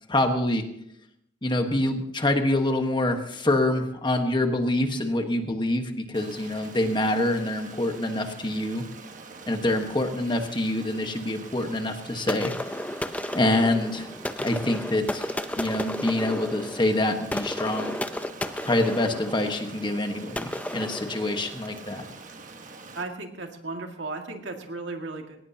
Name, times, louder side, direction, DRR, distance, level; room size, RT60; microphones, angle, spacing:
voice 1, 0.1-0.6 1.4-8.8 9.5-12.5 13.3-14.1 14.4-15.3 15.6-17.9 18.6-22.0, left 1 dB, 25° left, 5 dB, 1.3 m, -26 dB
Stream, 6.1-23.0, right 3 dB, 40° right, 1.4 m, -45 dB
sound 1, 12.3-21.9, left 1 dB, 10° left, 0.6 m, -33 dB
voice 2, 23.0-25.5, right 3 dB, 75° right, 3 dB, 2.1 m, -35 dB
20.0 x 18.0 x 2.9 m, 0.79 s
head